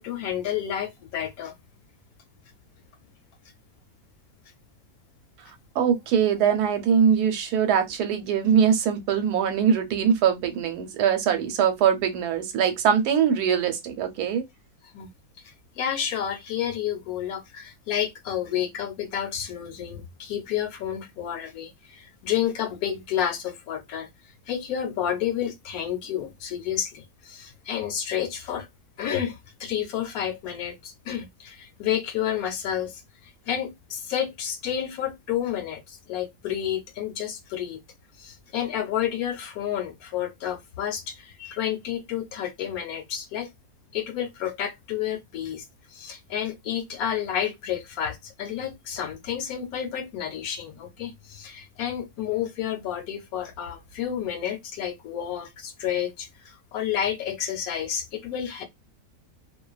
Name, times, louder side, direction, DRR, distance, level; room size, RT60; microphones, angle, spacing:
voice 1, 0.0-1.6 14.9-15.1 15.4-24.1 24.5-28.7 29.0-37.8 38.2-43.5 43.9-58.6, left 10 dB, 75° left, 1.0 m, -30 dB
voice 2, 5.7-14.4, right 8 dB, 85° right, 1.2 m, -22 dB
2.4 x 2.2 x 2.3 m
omnidirectional pair, 1.6 m